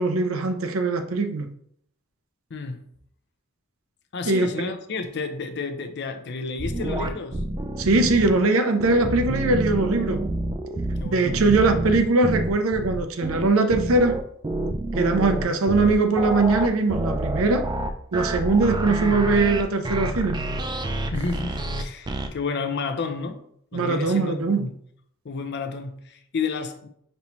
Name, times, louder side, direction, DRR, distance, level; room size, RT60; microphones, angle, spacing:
voice 1, 0.0-1.5 4.3-4.5 7.8-10.2 11.0-14.2 14.9-17.6 18.1-20.4 23.7-24.7, right 3 dB, 80° right, 0.6 m, -21 dB
voice 2, 2.5-2.8 4.1-7.4 11.0-11.4 21.1-23.4 23.7-24.7 25.2-26.9, left 4 dB, 55° left, 0.5 m, -31 dB
sound 1, 6.6-8.3 8.8-22.3, right 1 dB, 20° right, 0.3 m, -28 dB
5.4 x 2.9 x 3.0 m
head